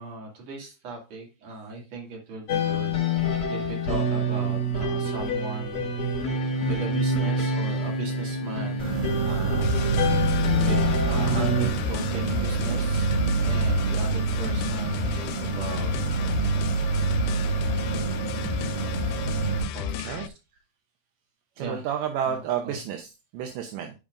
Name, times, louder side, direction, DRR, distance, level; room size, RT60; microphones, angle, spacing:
voice 1, 0.0-5.9 6.7-10.1 10.5-13.1 13.4-15.9 19.7-20.3 21.6-21.8 22.3-22.4 22.6-22.8, right 3 dB, 45° right, -1 dB, 3.2 m, -38 dB
sound 1, 2.5-11.7, left 1 dB, 35° left, 3.4 m, -26 dB
sound 2, 8.8-19.6, right 4 dB, 5° right, 3.5 m, -26 dB
sound 3, 9.6-20.3, left 10 dB, 85° left, 2.6 m, -33 dB
voice 2, 21.6-23.9, right 9 dB, 75° right, 4 dB, 2.1 m, -31 dB
12.5 x 5.1 x 2.5 m, 0.28 s
omnidirectional pair, 4.6 m